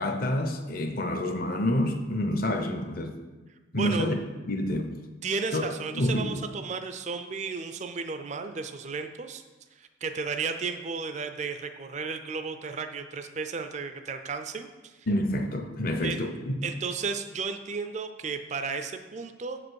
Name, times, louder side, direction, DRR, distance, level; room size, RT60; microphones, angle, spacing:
voice 1, 0.0-3.1 3.7-4.1 4.5-4.9 5.5-5.7 5.9-6.4 15.1-16.6, left 1 dB, 50° left, 6 dB, 0.7 m, -28 dB
voice 2, 3.7-4.1 5.2-9.4 9.8-15.0 16.0-16.2 16.6-19.6, right 4 dB, 35° right, 8 dB, 0.4 m, -34 dB
7.2 x 5.0 x 6.3 m, 1.3 s
head